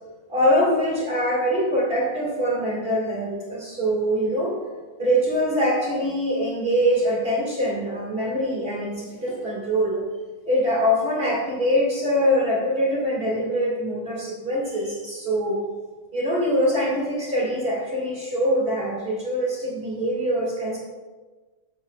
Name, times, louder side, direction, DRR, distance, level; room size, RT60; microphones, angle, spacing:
voice 1, 0.3-4.5 5.0-10.0 10.4-15.6 16.1-20.8, equal, 30° right, -5 dB, 1.1 m, -23 dB
12.5 x 7.9 x 2.4 m, 1.3 s
omnidirectional pair, 4.3 m